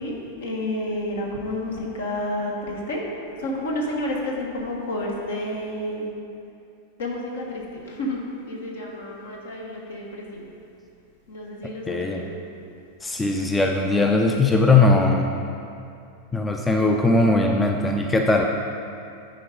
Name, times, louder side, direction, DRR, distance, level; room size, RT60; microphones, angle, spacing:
voice 1, 0.0-3.0 3.3-6.1 7.0-10.5 11.3-12.4, left 1 dB, 65° left, -2 dB, 1.4 m, -30 dB
voice 2, 11.9-12.2 13.0-15.3 16.3-18.4, left 3 dB, 10° left, 2 dB, 0.5 m, -19 dB
10.0 x 4.5 x 5.3 m, 2.6 s
figure-of-eight pair, 90°, 0 cm